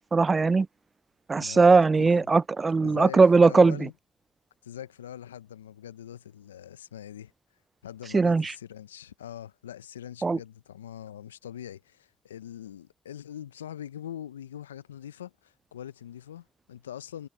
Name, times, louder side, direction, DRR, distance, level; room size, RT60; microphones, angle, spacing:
voice 1, 0.1-0.7 1.3-3.8 8.1-8.5 10.2-10.4, right 4 dB, 35° right, 0.4 m, -19 dB
voice 2, 1.4-2.3 2.8-3.9 4.6-7.3 7.8-17.3, left 10 dB, 85° left, 0.8 m, -42 dB
figure-of-eight pair, 40°, 0 cm